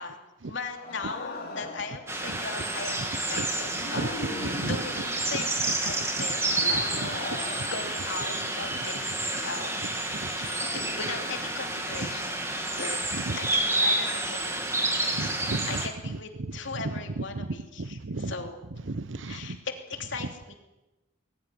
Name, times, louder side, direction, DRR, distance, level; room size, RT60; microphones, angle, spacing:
voice 1, 0.0-7.0 7.4-9.8 10.3-12.4 12.8-13.0 13.3-14.6 14.9-15.2 15.7-18.6 19.3-19.7 20.0-20.5, left 4 dB, 65° left, 4 dB, 3.0 m, -38 dB
sound 1, 0.7-2.1 3.6-5.3 6.4-9.1 10.5-11.5, left 1 dB, 45° left, 3.3 m, -40 dB
sound 2, 2.1-15.9, right 2 dB, 15° right, 2.4 m, -30 dB
voice 2, 4.4-4.8 5.3-5.4 6.7-7.7 8.9-9.0 10.1-10.3 13.1-13.4 15.1-16.2 16.5-16.6 16.8-17.5 17.8-18.3 18.9-19.6 20.2-20.3, right 2 dB, 70° right, 16 dB, 0.9 m, -34 dB
21.0 x 14.5 x 9.9 m, 1.0 s
head